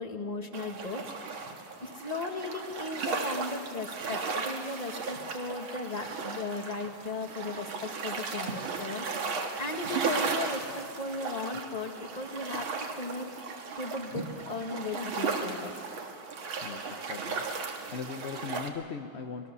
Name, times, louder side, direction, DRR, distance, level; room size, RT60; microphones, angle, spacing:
voice 1, 0.0-1.5 1.8-9.3 9.6-13.3 13.8-15.8, left 3 dB, 20° left, 5 dB, 1.4 m, -37 dB
sound 1, 0.5-18.7, right 4 dB, 80° right, 2.5 m, -36 dB
voice 2, 16.6-19.5, left 5 dB, 55° left, 5 dB, 0.7 m, -40 dB
26.0 x 20.5 x 6.9 m, 2.3 s
omnidirectional pair, 2.2 m